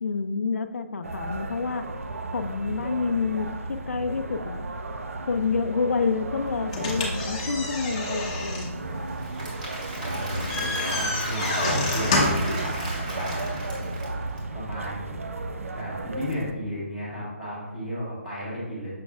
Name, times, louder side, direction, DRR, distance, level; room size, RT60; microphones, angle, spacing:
voice 1, 0.0-1.8 2.3-3.5 3.9-4.6 5.3-8.7, left 4 dB, 75° left, 8 dB, 0.5 m, -28 dB
sound 1, 1.0-16.5, right 2 dB, 70° right, 0.6 m, -34 dB
sound 2, 6.7-12.6, left 2 dB, 20° left, 0.9 m, -29 dB
Applause / Crowd, 9.1-14.4, right 1 dB, 30° right, 2.0 m, -35 dB
voice 2, 10.0-13.4 14.5-15.2 15.7-18.9, equal, 5° right, -10 dB, 1.5 m, -34 dB
6.5 x 6.3 x 2.4 m, 1.1 s
hypercardioid pair, 175°, 8 cm